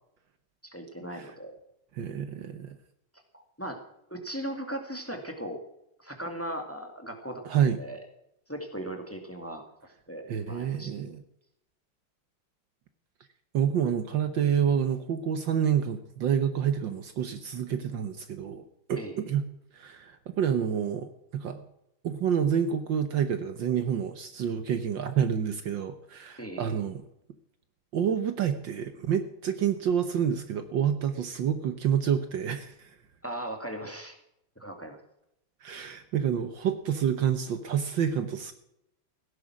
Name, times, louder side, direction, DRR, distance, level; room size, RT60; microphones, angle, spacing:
voice 1, 0.6-1.6 3.1-3.8 4.1-5.6 6.0-7.4 7.8-8.0 8.5-9.6 10.1-10.9 19.0-19.2 26.4-26.8 33.2-34.1 34.6-35.0, right 1 dB, 5° left, 5 dB, 2.0 m, -38 dB
voice 2, 1.9-2.8 7.4-7.8 10.3-11.2 13.5-18.6 18.9-19.5 19.7-21.6 22.0-27.0 27.9-32.9 35.6-38.5, right 8 dB, 65° right, 9 dB, 1.6 m, -28 dB
16.5 x 10.5 x 6.1 m, 0.81 s
omnidirectional pair, 2.4 m